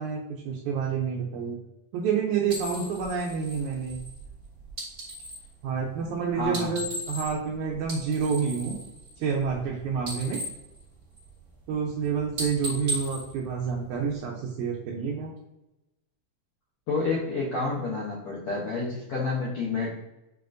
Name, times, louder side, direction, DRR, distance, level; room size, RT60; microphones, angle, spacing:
voice 1, 0.0-1.6 1.9-4.0 5.6-8.8 9.2-10.4 11.7-15.3, right 6 dB, 80° right, -1 dB, 1.7 m, -28 dB
sound 1, 2.5-5.5 6.4-7.5 7.8-9.7 9.9-11.5 11.8-12.1 12.3-14.2, right 1 dB, 45° right, 1.2 m, -37 dB
voice 2, 6.4-6.7 16.9-19.9, left 3 dB, 75° left, -6 dB, 1.3 m, -29 dB
6.0 x 2.5 x 2.5 m, 0.94 s
omnidirectional pair, 3.8 m